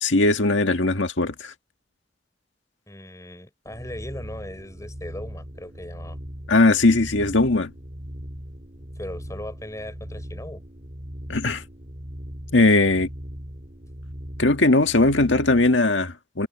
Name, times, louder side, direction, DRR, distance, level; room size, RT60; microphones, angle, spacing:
voice 1, 0.0-1.5 6.5-7.7 11.3-11.6 12.5-13.1 14.4-16.5, left 2 dB, 85° left, 1.8 m, -19 dB
voice 2, 2.9-6.2 9.0-10.6, left 1 dB, 15° left, 5.6 m, -38 dB
sound 1, 3.7-15.8, equal, 40° right, 3.7 m, -39 dB
head